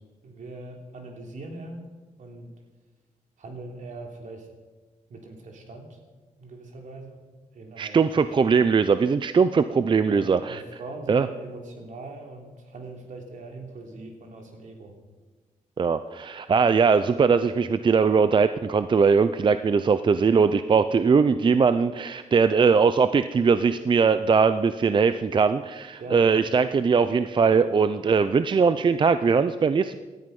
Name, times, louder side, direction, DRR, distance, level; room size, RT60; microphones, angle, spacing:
voice 1, 0.2-1.9 2.2-2.5 3.4-4.5 5.1-6.0 6.4-7.2 7.5-8.4 10.1-15.0 26.0-26.3, right 2 dB, 70° right, 2 dB, 3.3 m, -41 dB
voice 2, 7.8-10.6 11.1-11.3 15.8-30.0, right 5 dB, 35° right, 12 dB, 0.5 m, -21 dB
18.5 x 13.0 x 5.4 m, 1.3 s
cardioid pair, 105°, 13 cm